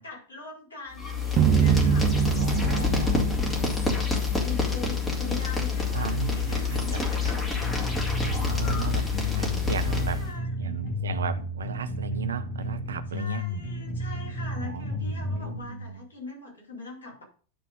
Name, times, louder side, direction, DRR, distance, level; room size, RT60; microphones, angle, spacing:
voice 1, 0.0-2.9 3.5-4.1 4.4-7.8 8.8-9.4 9.8-10.5 13.1-17.2, left 3 dB, 70° left, 4.0 m, -42 dB
sound 1, 0.9-10.3, left 5 dB, 15° left, 2.3 m, -27 dB
sound 2, 1.4-4.6, right 8 dB, 30° right, 0.8 m, -24 dB
voice 2, 2.3-3.3 5.9-7.0 8.2-9.1 9.4-10.2 10.6-13.4 14.6-15.9, right 6 dB, 70° right, 0.6 m, -35 dB
sound 3, 7.6-15.6, left 1 dB, 40° left, 1.8 m, -32 dB
10.5 x 3.7 x 5.2 m
figure-of-eight pair, 90°, 0 cm